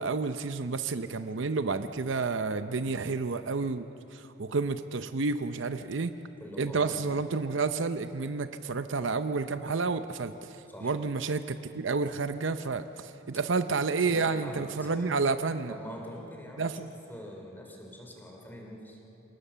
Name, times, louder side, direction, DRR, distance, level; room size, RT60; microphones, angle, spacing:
voice 1, 0.0-6.1 6.6-15.7 16.6-16.9, right 4 dB, 65° right, 10 dB, 0.7 m, -30 dB
voice 2, 2.7-3.1 6.4-7.0 10.7-11.0 13.9-15.1 15.7-19.0, equal, 10° left, 1 dB, 3.2 m, -44 dB
27.5 x 18.5 x 6.9 m, 2.8 s
head